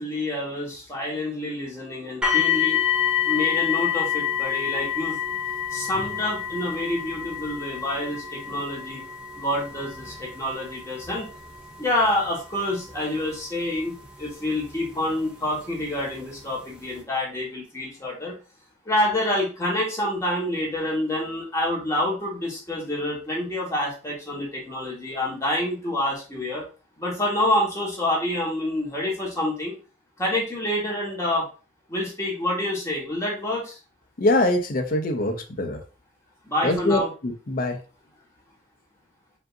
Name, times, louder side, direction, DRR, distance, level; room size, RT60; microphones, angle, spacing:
voice 1, 0.0-2.8 3.2-5.2 5.7-9.0 9.3-11.3 11.8-18.3 18.8-26.6 27.0-29.7 30.2-31.4 31.9-33.8 36.4-37.1, left 1 dB, 15° left, -4 dB, 1.4 m, -27 dB
sound 1, 2.2-15.1 15.9-16.0 16.6-16.7, left 10 dB, 5° right, 0.6 m, -28 dB
voice 2, 34.2-35.8 36.6-37.8, left 1 dB, 50° left, 4 dB, 0.6 m, -23 dB
5.1 x 2.7 x 2.6 m, 0.34 s
head